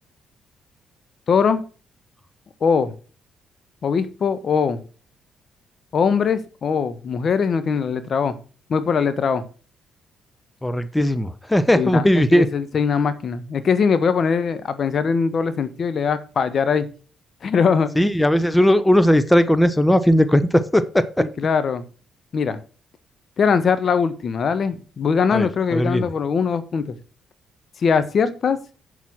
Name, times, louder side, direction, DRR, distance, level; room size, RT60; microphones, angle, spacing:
voice 1, 1.3-1.6 2.6-2.9 3.8-4.8 5.9-8.3 8.7-9.4 11.7-16.9 17.4-17.9 21.2-21.8 22.3-22.6 23.4-27.0 27.8-28.6, left 6 dB, 55° left, 13 dB, 1.2 m, -21 dB
voice 2, 10.6-12.5 18.0-21.3 25.3-26.1, equal, 10° left, 13 dB, 1.0 m, -18 dB
8.0 x 7.2 x 6.1 m, 0.37 s
supercardioid pair, 60°, 0 cm